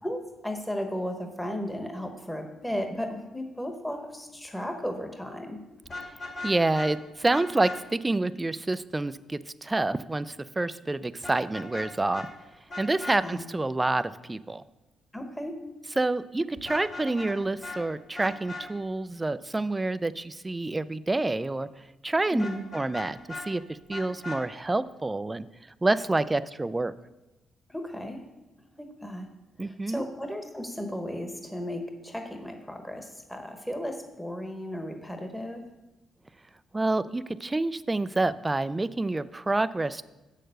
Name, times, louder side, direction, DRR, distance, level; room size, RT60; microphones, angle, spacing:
voice 1, 0.0-5.6 13.2-13.4 15.1-15.6 22.3-22.6 27.7-28.2 28.7-29.3 29.6-35.6, equal, 5° left, 5 dB, 1.1 m, -35 dB
Vehicle horn car horn honking, 5.8-6.9 7.3-7.8 11.2-11.9 12.1-12.3 12.7-13.2 16.6-17.4 17.6-17.8 18.1-18.6 22.4-23.5 23.9-24.4, left 2 dB, 45° left, 2.1 m, -38 dB
voice 2, 6.4-12.3 12.8-14.6 16.0-21.7 22.0-22.4 22.7-23.2 23.4-25.5 25.8-26.9 29.6-30.0 36.7-40.1, right 2 dB, 15° right, 15 dB, 0.4 m, -28 dB
7.5 x 6.6 x 6.5 m, 1.1 s
cardioid pair, 90°, 0 cm